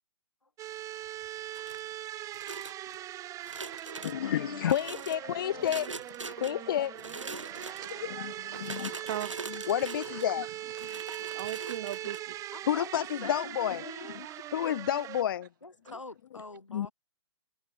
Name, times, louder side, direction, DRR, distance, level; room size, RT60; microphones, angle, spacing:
sound 1, 0.6-15.2, right 13 dB, 20° right, 2.7 m, -41 dB
sound 2, 1.5-1.9 2.3-3.0 3.4-4.2 4.6-5.2 5.6-6.5 6.9-8.0 8.5-10.3 10.8-12.2, right 3 dB, 80° right, 1.7 m, -42 dB
voice 1, 4.0-7.3 7.7-8.9 9.7-10.5 10.8-10.9 12.7-14.3 14.5-15.5 16.7-16.9, left 10 dB, 45° left, 0.5 m, -31 dB
voice 2, 8.2-8.6 9.1-9.3 10.1-10.2 11.3-12.4 14.2-14.5, right 13 dB, 40° right, 0.8 m, -39 dB
voice 3, 12.5-14.4 15.6-16.9, left 2 dB, 85° left, 4.5 m, -46 dB
figure-of-eight pair, 125°, 16 cm